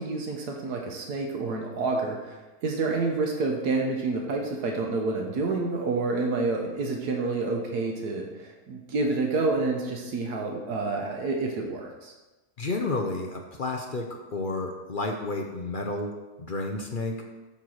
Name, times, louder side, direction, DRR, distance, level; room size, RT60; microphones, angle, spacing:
voice 1, 0.0-12.1, right 3 dB, 90° right, 1 dB, 1.6 m, -28 dB
voice 2, 12.6-17.2, left 2 dB, 45° left, 2 dB, 0.8 m, -31 dB
9.0 x 4.4 x 6.4 m, 1.1 s
omnidirectional pair, 1.6 m